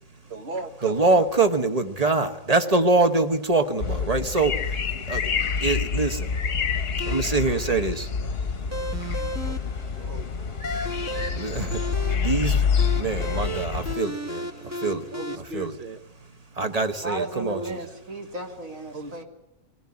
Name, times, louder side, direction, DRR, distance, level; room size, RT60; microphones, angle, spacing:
voice 1, 0.3-1.2 9.4-9.6 10.0-10.6 14.8-16.0 18.9-19.2, right 2 dB, 50° right, 8 dB, 1.6 m, -38 dB
voice 2, 0.8-6.3 7.0-8.1 10.7-10.9 11.3-11.8 12.1-12.7 13.0-15.0 15.5-15.8 16.6-17.6, right 3 dB, 30° right, 8 dB, 1.4 m, -24 dB
sound 1, 3.8-14.0, left 6 dB, 50° left, 1.1 m, -27 dB
sound 2, 7.0-15.3, right 1 dB, 15° right, 1.0 m, -35 dB
voice 3, 17.0-19.2, right 1 dB, 75° right, 2 dB, 3.5 m, -35 dB
21.5 x 17.5 x 9.8 m, 0.88 s
omnidirectional pair, 1.4 m